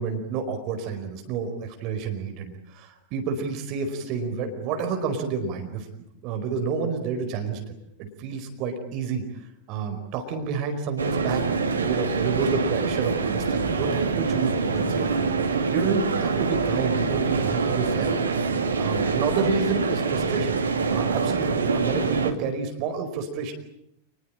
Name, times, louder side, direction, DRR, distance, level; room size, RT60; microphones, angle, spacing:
voice 1, 0.0-5.9 6.2-7.6 8.0-9.3 9.7-11.4 11.8-18.1 18.8-20.6 20.9-23.5, right 5 dB, 40° right, 5 dB, 4.8 m, -29 dB
sound 1, 11.0-22.3, right 4 dB, 75° right, 2.6 m, -25 dB
28.5 x 21.0 x 8.9 m, 0.79 s
figure-of-eight pair, 90°, 0 cm